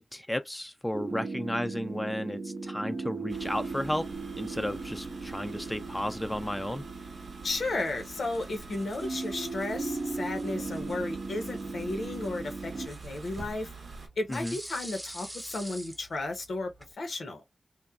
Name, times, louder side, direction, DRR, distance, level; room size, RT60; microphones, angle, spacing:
voice 1, 0.0-4.1 4.3-6.8 14.3-14.6, left 1 dB, 15° left, 0.4 m, -33 dB
sound 1, 0.9-12.9, right 3 dB, 50° right, 0.4 m, -38 dB
sound 2, 3.3-14.1, right 4 dB, 80° right, 0.7 m, -46 dB
voice 2, 7.4-13.7 14.2-16.7 17.0-17.4, left 2 dB, 80° left, 0.8 m, -34 dB
sound 3, 7.7-16.9, right 1 dB, 10° right, 0.7 m, -48 dB
3.0 x 2.1 x 2.3 m
cardioid pair, 50°, 0 cm